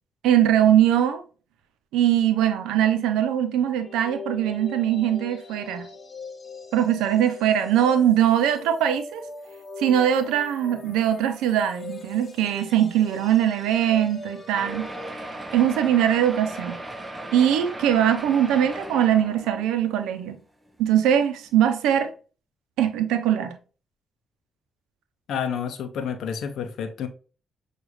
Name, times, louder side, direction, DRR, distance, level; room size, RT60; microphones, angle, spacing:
voice 1, 0.2-1.2 1.9-5.9 6.7-9.2 9.8-14.9 15.5-16.8 17.3-20.4 20.8-22.1 22.8-23.6, right 10 dB, 85° right, 0.6 m, -21 dB
sound 1, 3.8-15.1, left 3 dB, 45° left, 1.1 m, -41 dB
sound 2, 14.5-20.0 20.7-20.8 21.0-21.1 21.5-21.6, right 1 dB, 20° right, 0.8 m, -37 dB
voice 2, 25.3-27.1, left 7 dB, 75° left, 0.5 m, -29 dB
6.1 x 2.4 x 3.0 m
supercardioid pair, 50°, 0 cm